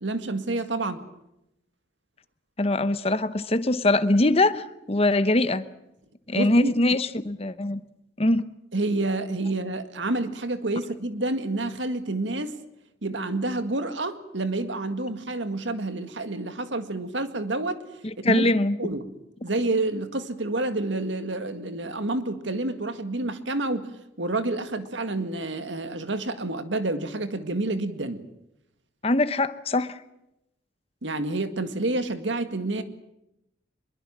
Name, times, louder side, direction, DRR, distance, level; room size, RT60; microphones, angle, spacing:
voice 1, 0.0-1.0 6.3-6.7 8.7-12.6 13.0-17.8 18.2-18.5 18.8-19.1 19.4-23.9 24.2-28.2 31.0-32.8, right 2 dB, 85° right, 9 dB, 2.0 m, -28 dB
voice 2, 2.6-5.6 6.3-7.8 8.2-8.4 18.0-18.8 29.0-30.0, left 2 dB, 30° left, 13 dB, 1.0 m, -22 dB
24.0 x 22.0 x 7.5 m, 0.86 s
head